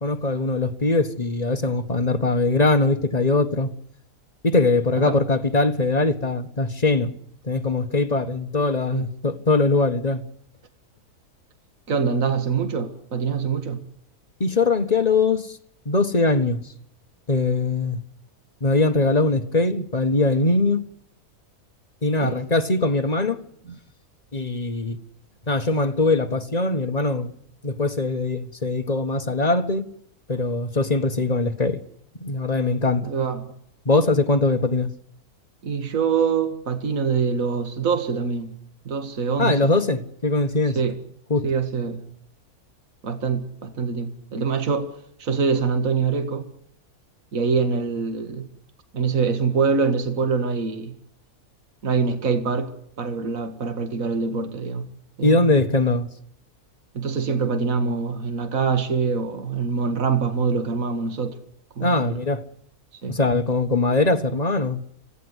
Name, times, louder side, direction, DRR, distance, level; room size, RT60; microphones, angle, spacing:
voice 1, 0.0-3.7 4.4-7.1 7.4-10.2 14.4-15.6 15.8-16.6 17.3-18.0 18.6-20.8 22.0-23.4 24.3-25.0 25.5-27.3 27.6-29.9 30.3-31.8 32.2-33.1 33.8-34.9 39.4-40.8 41.3-41.5 55.2-56.1 61.8-62.4 63.1-64.8, left 2 dB, 25° left, 1.5 m, -21 dB
voice 2, 11.9-13.8 22.2-22.4 23.7-23.8 33.0-33.5 35.6-38.6 38.8-39.7 40.8-41.0 41.4-42.0 43.0-46.5 47.3-48.5 48.9-50.9 51.8-54.9 55.2-55.5 56.9-61.4 61.8-62.2 63.0-63.2, right 5 dB, 60° right, 2.2 m, -24 dB
26.5 x 17.0 x 8.2 m
omnidirectional pair, 1.6 m